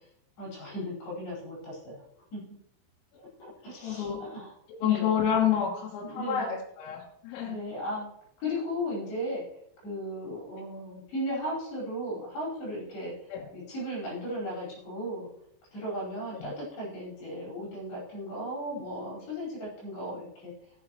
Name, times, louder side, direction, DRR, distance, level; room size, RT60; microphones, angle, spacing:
voice 1, 0.4-2.0 2.3-2.4 3.1-4.5 4.8-5.1 6.0-6.6 7.4-8.1 8.4-9.4 9.8-13.1 13.5-15.3 15.7-20.5, equal, 55° left, -6 dB, 6.6 m, -36 dB
voice 2, 3.8-4.2 4.7-7.6 13.3-13.5 16.3-16.5, left 9 dB, 85° left, -2 dB, 3.8 m, -29 dB
16.0 x 7.8 x 3.1 m, 0.73 s
omnidirectional pair, 5.9 m